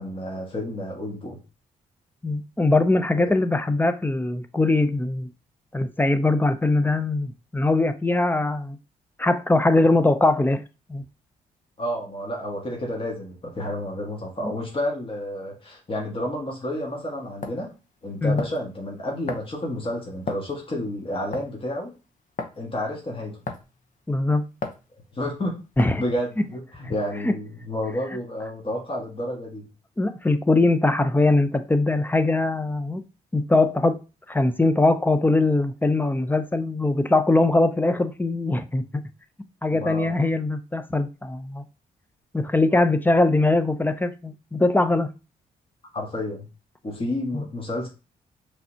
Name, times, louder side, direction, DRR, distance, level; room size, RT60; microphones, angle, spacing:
voice 1, 0.0-1.4 3.1-3.3 11.8-17.7 18.0-21.9 22.6-23.4 25.1-25.6 26.0-29.7 39.7-40.3 45.9-46.5 46.8-47.9, left 1 dB, 35° left, 1.7 m, -30 dB
voice 2, 2.2-5.3 5.7-8.8 9.2-10.6 10.9-11.0 14.4-14.5 18.2-18.4 24.1-24.5 25.8-26.0 27.2-27.4 30.0-33.0 33.3-34.0 34.3-39.0 39.6-41.6 42.3-45.1 47.3-47.4, left 2 dB, 10° left, 0.6 m, -21 dB
sound 1, 16.7-16.8 17.4-17.6 18.4-18.7 19.3-19.6 20.3-20.5 21.3-21.6 22.4-22.6 23.5-23.8 24.6-24.8 25.8-26.1, left 3 dB, 50° left, 0.9 m, -33 dB
5.4 x 3.4 x 2.8 m
supercardioid pair, 65°, 16 cm